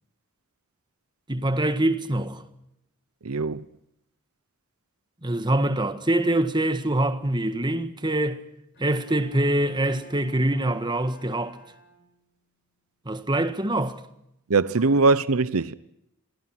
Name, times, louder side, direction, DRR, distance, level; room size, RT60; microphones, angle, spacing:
voice 1, 1.3-2.4 5.2-8.4 8.8-11.6 13.0-14.0, right 1 dB, 20° right, 1.6 m, -24 dB
voice 2, 3.2-3.6 14.5-15.8, right 3 dB, 75° right, 0.8 m, -21 dB
Bowed string instrument, 8.7-12.5, right 1 dB, 50° left, 4.6 m, -51 dB
29.0 x 22.0 x 6.1 m
head